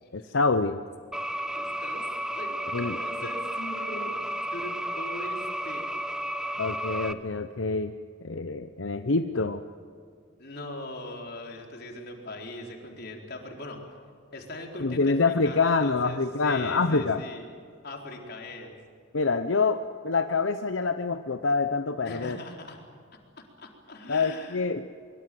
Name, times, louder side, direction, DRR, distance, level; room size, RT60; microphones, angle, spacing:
voice 1, 0.1-0.8 2.7-3.0 6.6-7.9 8.2-9.6 14.8-17.2 19.1-22.4 24.1-24.8, left 4 dB, 85° left, 9 dB, 0.9 m, -26 dB
sound 1, 1.1-7.1, right 1 dB, 5° right, 0.9 m, -33 dB
voice 2, 1.5-2.1 2.3-4.2 4.5-5.9 10.4-13.8 14.3-17.5 17.8-18.8 22.1-22.8 23.6-24.6, left 1 dB, 55° left, 1 dB, 4.4 m, -40 dB
24.0 x 23.5 x 7.8 m, 2.2 s
head